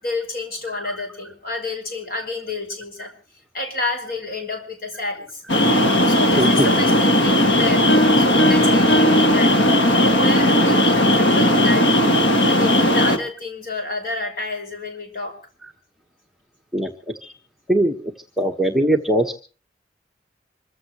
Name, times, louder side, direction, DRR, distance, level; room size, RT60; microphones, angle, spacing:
voice 1, 0.0-3.1 3.5-5.4 6.1-7.9 8.2-9.6 9.9-12.0 12.4-15.4, left 2 dB, 50° left, 4 dB, 5.4 m, -29 dB
sound 1, 5.5-13.2, left 1 dB, 85° left, 2.0 m, -17 dB
voice 2, 6.4-6.7 16.7-16.9 17.2-17.3 17.7-18.1 18.4-19.4, right 1 dB, ahead, 1 dB, 1.4 m, -21 dB
Piano, 7.9-10.3, equal, 65° left, 1.8 m, -22 dB
26.0 x 15.0 x 3.1 m, 0.37 s
head